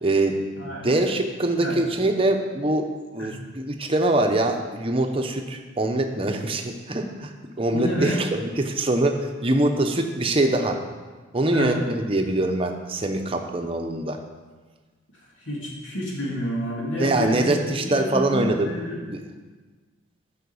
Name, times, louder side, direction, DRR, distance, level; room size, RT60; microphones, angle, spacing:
voice 1, 0.0-2.9 3.1-7.3 7.6-10.8 11.3-14.2 17.0-18.7 19.0-19.2, right 2 dB, 30° right, 4 dB, 0.9 m, -23 dB
voice 2, 0.6-1.0 1.6-1.8 3.2-3.3 7.7-8.2 11.5-11.7 15.4-19.0, equal, 70° left, -3 dB, 2.8 m, -29 dB
10.0 x 5.8 x 7.1 m, 1.3 s
head